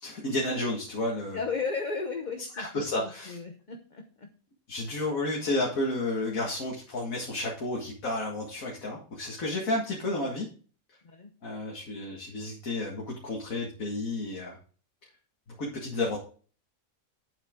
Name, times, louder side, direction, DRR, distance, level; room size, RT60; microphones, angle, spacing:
voice 1, 0.0-1.4 2.5-3.4 4.7-10.5 11.4-14.6 15.6-16.2, left 2 dB, 80° left, -2 dB, 2.3 m, -31 dB
voice 2, 1.3-4.3 11.0-11.3, left 4 dB, 35° left, 4 dB, 1.0 m, -35 dB
8.7 x 8.0 x 3.7 m, 0.40 s
omnidirectional pair, 1.4 m